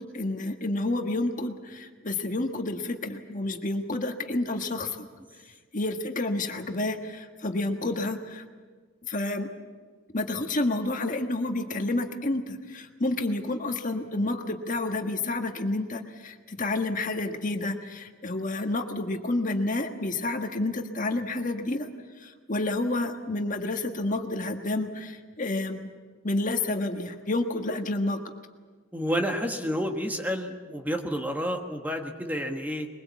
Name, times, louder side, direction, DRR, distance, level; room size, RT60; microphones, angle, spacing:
voice 1, 0.0-5.0 5.7-8.4 9.1-9.5 10.1-21.9 22.2-25.9 26.2-28.3, left 2 dB, 40° left, 5 dB, 1.5 m, -29 dB
voice 2, 28.9-32.9, equal, 10° right, 4 dB, 1.4 m, -30 dB
22.5 x 21.5 x 8.3 m, 1.5 s
head